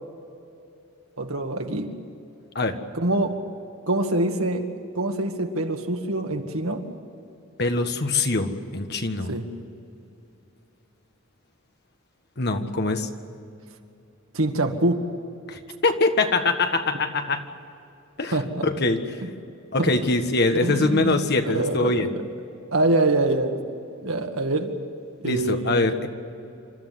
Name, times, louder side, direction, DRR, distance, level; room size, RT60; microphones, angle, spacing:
voice 1, 1.2-2.0 2.9-3.4 3.9-6.9 9.3-9.5 14.3-15.0 18.3-18.7 19.8-19.9 20.5-21.2 21.5-22.3 22.7-23.6 24.0-24.7 25.2-26.1, right 2 dB, 85° right, 4 dB, 2.1 m, -25 dB
voice 2, 7.6-9.3 12.4-13.1 15.5-17.4 18.2-19.0 19.7-22.1 25.2-26.1, left 3 dB, 50° left, 6 dB, 1.6 m, -23 dB
28.0 x 13.5 x 9.7 m, 2.7 s
head